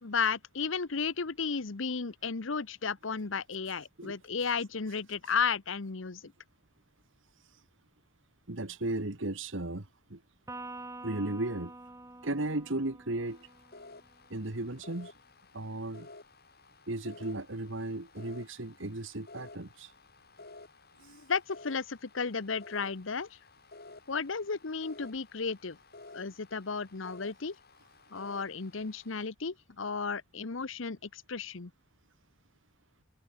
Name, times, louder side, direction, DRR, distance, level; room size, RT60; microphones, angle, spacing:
voice 1, 0.0-6.3 21.0-23.4 24.1-25.8 26.1-27.6 28.1-31.7, left 5 dB, 70° left, 1.0 m, -34 dB
voice 2, 8.5-10.2 11.0-11.7 12.2-13.5 14.3-15.1 15.5-16.1 16.9-19.9, right 2 dB, 65° right, 2.0 m, -35 dB
Electric guitar, 10.5-14.0, right 2 dB, 15° right, 1.8 m, -47 dB
sound 1, 13.3-29.3, left 3 dB, 50° left, 6.8 m, -53 dB
head